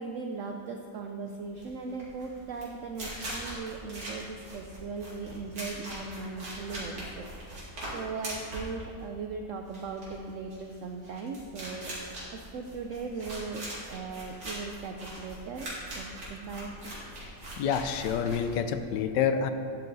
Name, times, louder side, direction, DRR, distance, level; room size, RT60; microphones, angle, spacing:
voice 1, 0.0-7.3 7.9-12.1 12.3-15.7 15.9-16.7, right 4 dB, 80° right, 3 dB, 0.7 m, -38 dB
sound 1, 1.5-18.9, right 1 dB, 60° right, 2.8 m, -41 dB
voice 2, 17.6-19.5, left 7 dB, 75° left, 9 dB, 1.2 m, -28 dB
10.0 x 7.9 x 4.0 m, 2.5 s
omnidirectional pair, 1.9 m